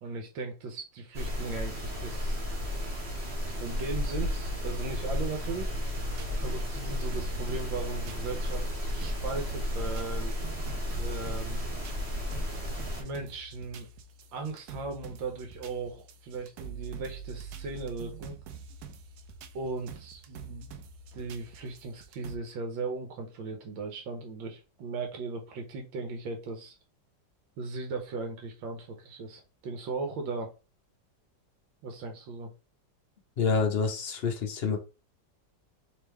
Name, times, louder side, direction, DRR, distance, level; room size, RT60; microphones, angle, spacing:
voice 1, 0.0-2.4 3.5-5.7 6.4-10.4 11.0-11.6 13.0-13.9 14.3-18.4 19.5-20.7 21.1-26.8 27.6-30.5 31.8-32.5, right 3 dB, 90° right, 3 dB, 1.6 m, -37 dB
sound 1, 1.1-13.0, left 1 dB, 35° right, 1.8 m, -33 dB
sound 2, 5.9-22.4, right 6 dB, 70° right, 1.0 m, -46 dB
voice 2, 33.4-34.8, left 5 dB, 50° left, 3 dB, 0.7 m, -27 dB
3.5 x 3.4 x 3.2 m, 0.31 s
omnidirectional pair, 2.0 m